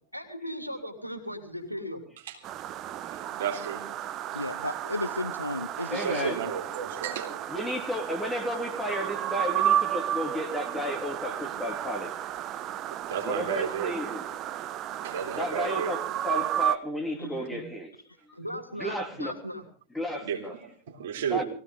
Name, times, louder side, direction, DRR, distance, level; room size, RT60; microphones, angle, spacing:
voice 1, 0.1-2.0 17.1-17.6 18.4-19.6, equal, 90° right, 7 dB, 3.0 m, -38 dB
sound 1, 2.4-16.8, right 11 dB, 35° right, 1.0 m, -32 dB
voice 2, 3.3-3.8 5.9-7.4 13.1-14.0 15.0-16.0 20.2-21.4, right 7 dB, 60° right, 1 dB, 3.5 m, -33 dB
voice 3, 4.3-6.3 17.2-17.3, left 2 dB, 85° left, 12 dB, 0.8 m, -33 dB
voice 4, 5.9-6.4 7.5-12.6 13.2-14.2 15.3-17.9 18.8-19.3 19.9-20.5 21.3-21.4, equal, 5° left, 1 dB, 3.2 m, -33 dB
22.5 x 16.0 x 3.8 m, 0.43 s
figure-of-eight pair, 90°, 0 cm